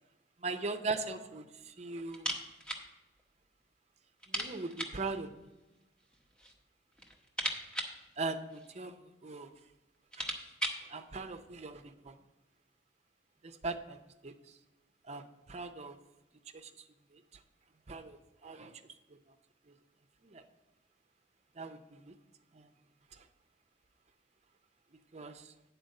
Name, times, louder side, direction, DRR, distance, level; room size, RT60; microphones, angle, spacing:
voice 1, 0.4-2.3 4.3-5.3 8.2-9.5 10.2-10.3 10.8-12.1 13.4-14.5 15.1-16.0 16.5-16.7 17.1-17.2 17.9-18.8 19.1-19.2 19.7-19.8 20.2-20.4 21.6-22.1 22.5-22.7 23.1-23.2 25.1-25.5, right 3 dB, 40° right, 7 dB, 0.6 m, -40 dB
sound 1, 2.1-2.9 3.2-3.3 3.6-3.7 4.2-5.1 6.0-6.6 6.9-8.9 9.6-9.7 9.9-10.9, right 1 dB, 5° left, 0.8 m, -39 dB
9.2 x 4.5 x 6.4 m, 1.1 s
head